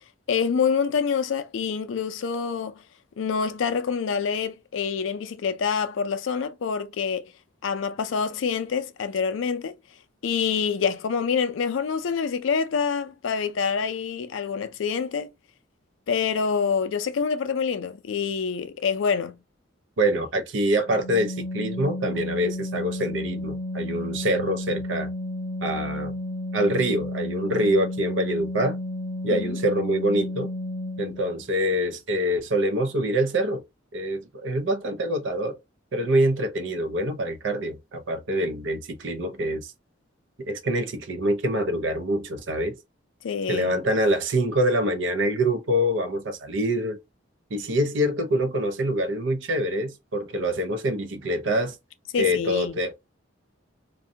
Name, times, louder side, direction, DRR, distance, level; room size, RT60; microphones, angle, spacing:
voice 1, 0.3-2.8 3.2-7.2 7.6-9.7 10.2-15.3 16.1-19.3 29.3-29.6 43.2-43.7 52.1-52.8, left 6 dB, 75° left, 0.4 m, -26 dB
voice 2, 20.0-25.1 25.6-26.1 26.5-28.8 29.2-30.5 31.0-33.6 33.9-35.6 35.9-39.7 40.5-42.7 43.5-47.0 47.5-51.7 52.2-53.0, right 1 dB, 70° right, 0.6 m, -25 dB
Organ, 20.8-31.4, left 1 dB, 40° right, 0.9 m, -32 dB
2.6 x 2.2 x 2.6 m
head